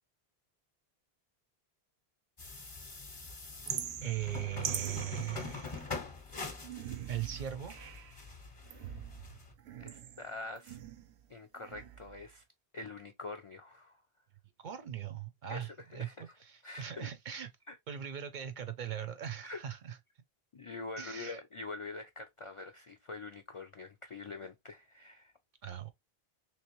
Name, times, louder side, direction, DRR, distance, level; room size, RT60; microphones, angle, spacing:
sound 1, 2.4-9.5, left 4 dB, 35° left, 0.8 m, -44 dB
sound 2, 3.7-6.1 6.6-8.2 8.7-11.2 11.6-12.2, right 9 dB, 90° right, 0.9 m, -43 dB
voice 1, 4.0-5.9 7.1-7.8 14.6-17.5 17.9-20.0 21.0-21.4 25.6-25.9, right 10 dB, 60° right, 0.6 m, -39 dB
voice 2, 9.8-10.8 11.3-12.4 12.7-14.0 15.5-16.4 16.6-17.1 17.7-17.8 19.4-19.6 20.5-25.3, left 3 dB, 55° left, 0.3 m, -45 dB
3.3 x 3.0 x 2.9 m
omnidirectional pair, 1.1 m